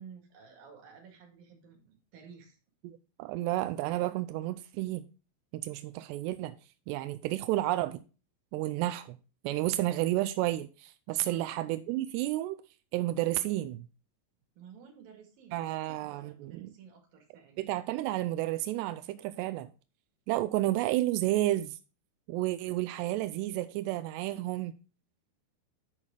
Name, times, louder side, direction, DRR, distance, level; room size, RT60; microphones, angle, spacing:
voice 1, 0.0-2.6 11.2-11.5 14.5-17.7, right 6 dB, 55° right, 3.5 m, -53 dB
voice 2, 2.8-5.0 5.5-6.6 6.9-8.0 8.5-9.2 9.4-12.6 12.9-13.9 15.5-16.7 17.6-19.7 20.3-21.8 22.3-24.7, right 16 dB, 85° right, 2.4 m, -31 dB
9.0 x 6.3 x 3.7 m
omnidirectional pair, 5.4 m